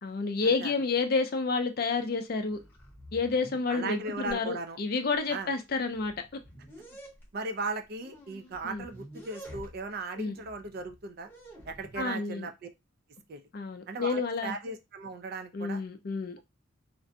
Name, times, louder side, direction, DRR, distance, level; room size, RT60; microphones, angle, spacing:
voice 1, 0.0-2.6 3.1-6.1 8.6-8.9 10.2-10.4 12.0-12.5 13.5-14.6 15.5-16.4, left 4 dB, 45° left, 6 dB, 0.4 m, -30 dB
sound 1, 2.0-2.2 2.5-4.4 5.2-5.3 5.7-7.3 8.0-10.0 10.3-12.0, right 1 dB, 10° left, 0.7 m, -49 dB
voice 2, 3.7-4.8 5.3-5.5 7.3-11.3 11.7-12.5 13.3-13.4 13.9-15.8, right 3 dB, 45° right, 7 dB, 0.3 m, -37 dB
2.5 x 2.1 x 2.6 m, 0.24 s
head